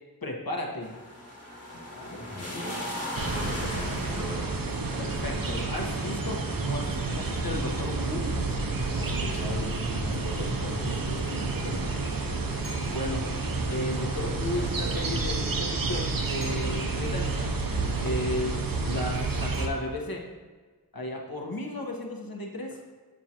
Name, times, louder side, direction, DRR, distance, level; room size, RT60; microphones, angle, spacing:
voice 1, 0.2-1.0 5.0-8.2 12.9-13.2 13.7-17.5 18.0-18.6 18.9-20.3 20.9-22.8, left 1 dB, 65° left, 0 dB, 1.2 m, -34 dB
sound 1, 0.8-9.9 11.2-11.3, left 1 dB, 40° left, 1.8 m, -40 dB
voice 2, 1.7-4.5 9.0-12.1, left 1 dB, 85° left, -2 dB, 1.4 m, -39 dB
sound 2, 3.2-19.7, right 3 dB, 60° right, 0.8 m, -30 dB
sound 3, 12.6-13.3 16.4-17.1 19.5-20.3, left 1 dB, 85° right, 1.8 m, -47 dB
7.5 x 6.2 x 2.9 m, 1.4 s
wide cardioid pair, 50°, 38 cm